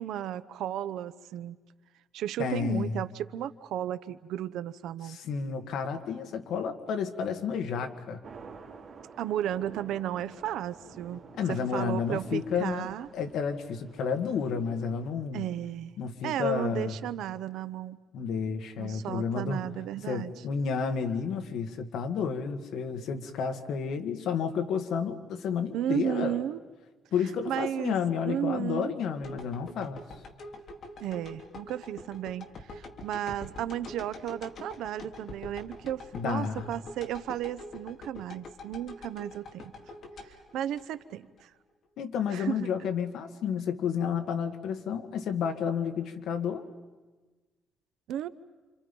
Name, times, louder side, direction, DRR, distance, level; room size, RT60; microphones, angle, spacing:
voice 1, 0.0-1.6 2.1-5.2 9.2-11.2 11.5-13.1 15.3-16.0 16.2-18.0 18.8-20.3 25.7-26.6 27.5-27.9 28.3-28.9 31.0-39.7 40.2-41.5 42.3-42.7 48.1-48.3, right 11 dB, 85° right, 14 dB, 0.8 m, -34 dB
voice 2, 2.4-3.0 5.0-8.2 11.4-12.9 13.1-15.5 16.0-16.9 18.1-19.6 20.1-26.4 27.1-30.0 36.1-36.7 42.0-46.6, left 6 dB, 75° left, 6 dB, 1.9 m, -31 dB
sound 1, 8.2-15.1, right 5 dB, 50° right, 4.3 m, -50 dB
sound 2, 29.2-41.4 41.8-41.9, left 2 dB, 50° left, 3.3 m, -45 dB
29.0 x 27.0 x 5.4 m, 1.3 s
cardioid pair, 150°, 0 cm